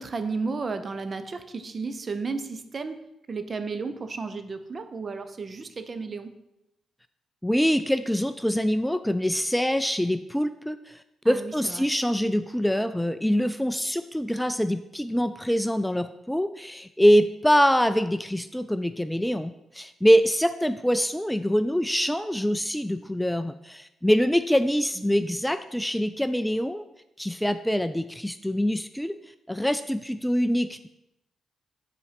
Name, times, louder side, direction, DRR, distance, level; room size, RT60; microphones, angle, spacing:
voice 1, 0.0-3.0 3.3-6.3 11.2-11.9 25.0-25.2, right 4 dB, 45° right, 10 dB, 0.7 m, -33 dB
voice 2, 7.4-26.8 27.2-29.1 29.5-30.9, equal, 5° left, 11 dB, 0.3 m, -24 dB
6.8 x 4.3 x 4.9 m, 0.87 s
supercardioid pair, 55°, 0 cm